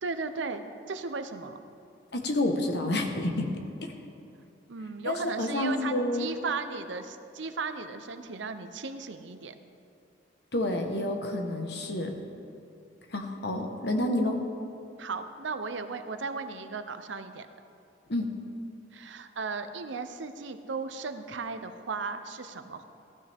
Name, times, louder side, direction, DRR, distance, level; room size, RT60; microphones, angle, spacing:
voice 1, 0.0-1.6 4.7-9.5 15.0-17.5 18.9-22.8, right 4 dB, 80° right, 9 dB, 0.7 m, -36 dB
voice 2, 2.1-3.5 5.0-6.3 10.5-12.1 13.1-14.4 18.1-18.3, left 1 dB, 60° left, 4 dB, 1.2 m, -29 dB
15.5 x 12.0 x 3.5 m, 2.6 s
head